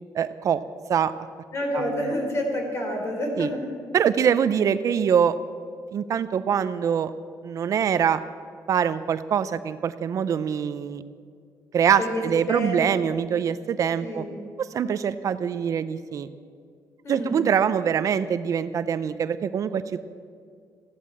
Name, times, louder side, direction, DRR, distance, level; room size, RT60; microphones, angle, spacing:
voice 1, 0.1-0.6 0.9-1.1 1.7-2.1 3.4-3.5 3.9-5.3 5.9-7.1 7.4-8.2 8.7-11.0 11.7-14.3 14.6-16.3 17.1-20.0, right 8 dB, 50° right, 13 dB, 0.5 m, -24 dB
voice 2, 1.5-3.6 12.0-12.2 12.5-13.1 14.0-14.3 17.0-17.4, equal, 40° left, 2 dB, 4.1 m, -28 dB
15.0 x 12.5 x 7.6 m, 2.3 s
cardioid pair, 140°, 7 cm